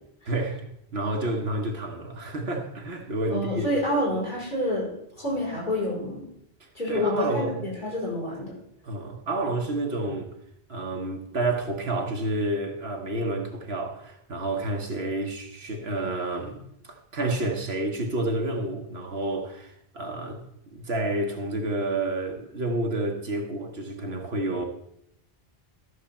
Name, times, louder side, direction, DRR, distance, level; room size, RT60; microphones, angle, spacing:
voice 1, 0.3-0.6 0.9-3.7 6.6-7.5 8.8-10.3 10.7-16.6 16.9-20.4 20.7-24.6, right 2 dB, 80° right, 1.5 m, -29 dB
voice 2, 3.3-4.9 5.2-6.3 6.7-8.5, left 1 dB, 55° left, 5.3 m, -28 dB
13.0 x 6.6 x 4.3 m
omnidirectional pair, 1.0 m